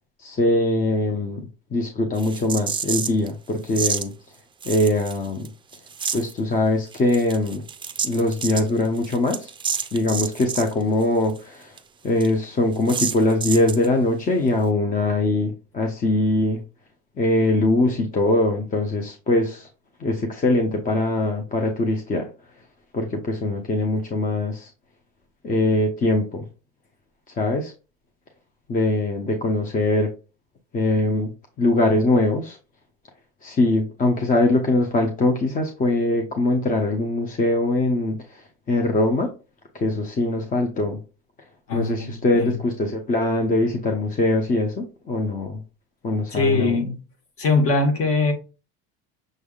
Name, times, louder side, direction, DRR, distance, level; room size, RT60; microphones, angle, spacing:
voice 1, 0.2-1.4 1.7-4.1 4.7-5.5 6.1-7.6 8.0-9.5 9.9-11.7 12.0-16.6 17.2-19.7 20.0-22.3 22.9-24.7 25.4-26.4 27.4-27.7 28.7-30.1 30.7-31.3 31.6-32.6 33.4-38.2 38.7-39.3 39.8-41.0 41.7-45.6 46.0-46.8, left 2 dB, 25° left, 0.7 m, -22 dB
sound 1, 2.2-3.3 3.7-4.1 4.6-5.5 5.7-6.3 6.9-10.7 11.0-11.1 11.4-11.5 11.8-11.9 12.2-12.3 12.9-13.9, right 6 dB, 15° right, 0.4 m, -29 dB
voice 2, 41.7-42.6 46.3-47.0 47.4-48.3, left 3 dB, 45° left, 1.5 m, -21 dB
6.4 x 3.4 x 2.3 m
supercardioid pair, 110°, 31 cm